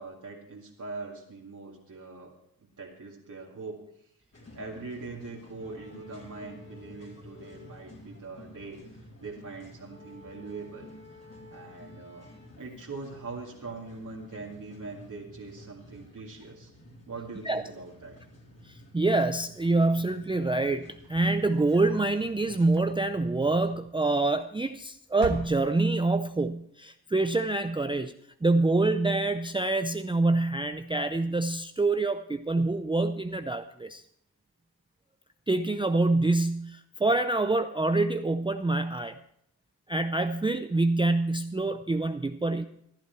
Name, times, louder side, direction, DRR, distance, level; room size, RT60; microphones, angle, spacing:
voice 1, 0.0-3.8 4.5-10.9 11.5-12.3 12.6-16.7 17.1-18.2, right 3 dB, 50° right, -3 dB, 2.3 m, -42 dB
sound 1, 4.3-23.8, left 1 dB, 40° left, 4.3 m, -51 dB
voice 2, 18.9-28.1 28.4-34.0 35.5-39.2 39.9-42.7, right 2 dB, 15° right, 8 dB, 0.5 m, -26 dB
sound 2, 21.0-22.2 22.6-23.3 24.3-24.8 25.1-26.0, right 4 dB, 80° right, 1.7 m, -41 dB
15.5 x 11.5 x 4.5 m, 0.70 s
cardioid pair, 70°, 39 cm